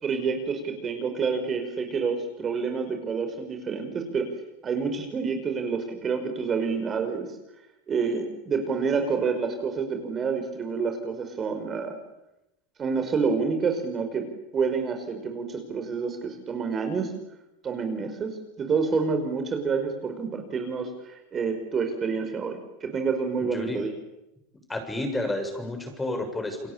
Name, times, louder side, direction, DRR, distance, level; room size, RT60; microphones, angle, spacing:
voice 1, 0.0-4.3 4.6-7.3 7.9-12.0 12.8-14.2 14.5-17.1 17.6-23.9, right 5 dB, 30° right, 5 dB, 5.3 m, -28 dB
voice 2, 23.4-23.8 24.7-26.7, left 1 dB, 10° left, 6 dB, 6.9 m, -31 dB
29.5 x 22.5 x 8.8 m, 0.92 s
supercardioid pair, 120°, 0 cm